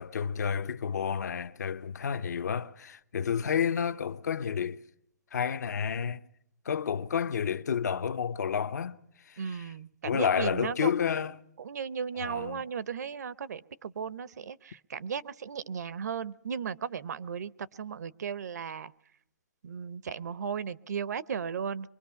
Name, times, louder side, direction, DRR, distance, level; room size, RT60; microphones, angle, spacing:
voice 1, 0.0-4.8 5.3-6.2 6.6-9.7 10.0-11.4 12.2-12.6, left 7 dB, 75° left, 0.9 m, -30 dB
voice 2, 9.4-10.9 11.6-18.9 19.6-21.9, right 7 dB, 70° right, 0.8 m, -36 dB
23.5 x 22.5 x 5.8 m
hypercardioid pair, 165°, 9 cm